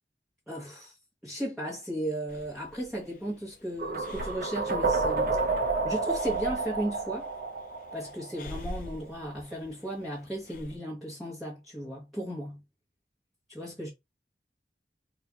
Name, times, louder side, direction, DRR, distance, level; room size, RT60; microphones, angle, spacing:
voice 1, 0.5-1.0 1.2-5.4 5.8-7.3 7.9-12.6 13.5-13.9, right 1 dB, ahead, 1.1 m, -35 dB
Breathing, 2.3-10.8, left 1 dB, 50° left, 0.5 m, -46 dB
sound 1, 3.8-8.7, right 3 dB, 50° right, 1.0 m, -30 dB
4.2 x 3.0 x 2.4 m
head